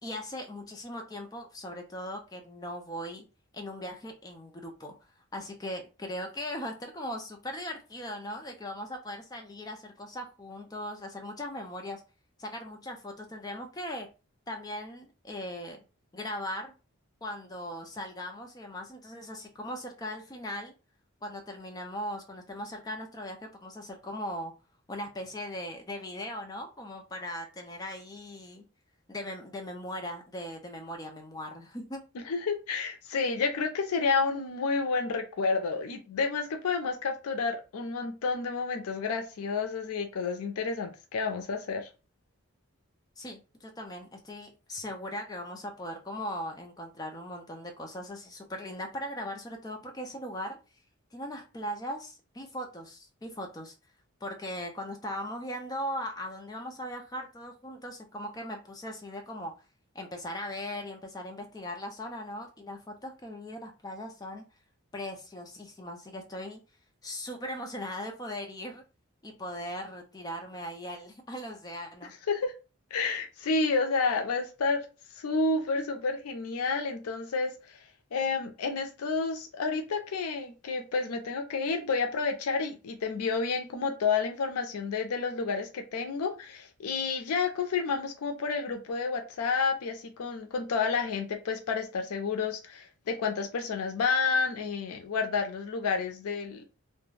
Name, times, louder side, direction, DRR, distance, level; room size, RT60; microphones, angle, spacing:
voice 1, 0.0-3.3 3.5-4.9 5.3-12.0 12.4-14.1 14.5-15.8 16.1-16.7 17.2-20.7 21.2-24.5 24.9-28.6 29.1-32.0 43.2-50.6 51.1-53.7 54.2-59.5 59.9-64.4 64.9-66.6 67.0-68.8 69.2-72.1, left 1 dB, 15° left, 4 dB, 0.4 m, -39 dB
voice 2, 32.3-41.9 72.3-72.5 72.9-74.8 75.2-77.8 78.1-96.6, left 4 dB, 85° left, 5 dB, 0.4 m, -30 dB
2.3 x 2.1 x 3.2 m, 0.31 s
head